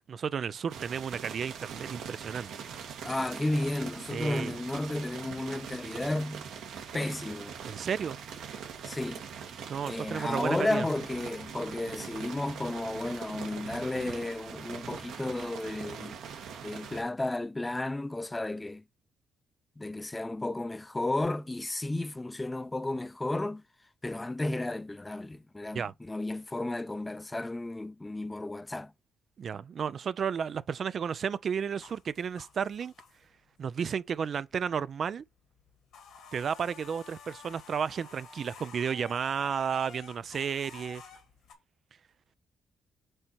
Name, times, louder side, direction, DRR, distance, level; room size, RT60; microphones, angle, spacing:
voice 1, 0.0-2.5 4.1-4.5 7.6-8.2 9.7-10.9 25.7-25.9 29.4-32.9 33.6-35.2 36.3-41.0, right 7 dB, 50° right, 0.4 m, -32 dB
sound 1, 0.7-17.0, right 7 dB, 80° right, 1.7 m, -42 dB
voice 2, 3.0-6.5 6.9-7.6 8.8-9.2 9.8-16.2 16.6-18.8 19.8-23.6 24.0-28.9, left 2 dB, 15° left, 0.5 m, -33 dB
sound 2, 31.7-33.5 33.9-34.8 35.0-35.2 35.5-41.5, left 6 dB, 75° left, 2.0 m, -51 dB
7.7 x 2.9 x 4.4 m
cardioid pair, 90°, 0 cm